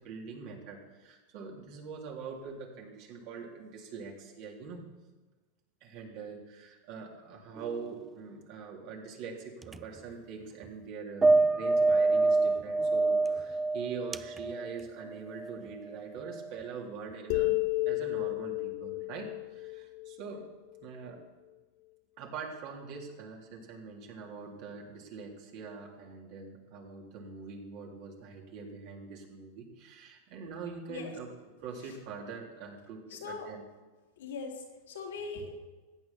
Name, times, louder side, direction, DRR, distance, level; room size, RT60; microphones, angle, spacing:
voice 1, 0.0-4.9 5.8-20.4 20.8-21.2 22.2-31.3 31.6-33.6, right 5 dB, 55° right, 0 dB, 3.4 m, -43 dB
sound 1, 7.6-8.0 9.6-9.8 11.2-15.6 16.3-16.5, right 3 dB, 15° right, 0.5 m, -27 dB
sound 2, 17.3-20.8, left 22 dB, 60° left, 0.7 m, -32 dB
voice 2, 33.1-33.5 34.2-35.6, left 4 dB, 85° left, -1 dB, 3.5 m, -40 dB
15.0 x 9.0 x 7.4 m, 1.2 s
hypercardioid pair, 110°, 0 cm